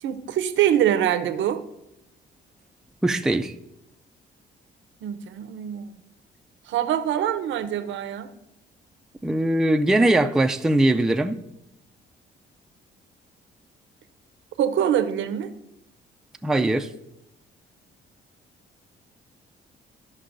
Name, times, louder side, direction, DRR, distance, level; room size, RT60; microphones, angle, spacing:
voice 1, 0.0-1.6 5.0-5.9 6.7-8.3 14.6-15.5, right 10 dB, 75° right, 0.6 m, -24 dB
voice 2, 3.0-3.5 9.2-11.4 16.4-16.9, right 1 dB, 5° right, 0.3 m, -21 dB
12.5 x 5.3 x 2.6 m
cardioid pair, 90°, 20 cm